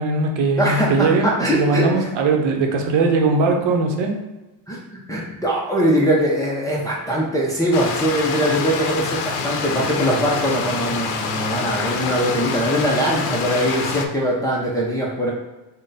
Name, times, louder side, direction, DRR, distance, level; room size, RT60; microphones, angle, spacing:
voice 1, 0.0-4.1, right 3 dB, 65° right, 3 dB, 0.8 m, -20 dB
voice 2, 0.6-2.1 4.7-4.8 5.1-15.3, right 1 dB, 10° left, -5 dB, 0.4 m, -21 dB
Stream, 7.7-14.1, left 5 dB, 85° left, 0.6 m, -26 dB
3.7 x 2.2 x 3.9 m, 1.1 s
cardioid pair, 140°, 49 cm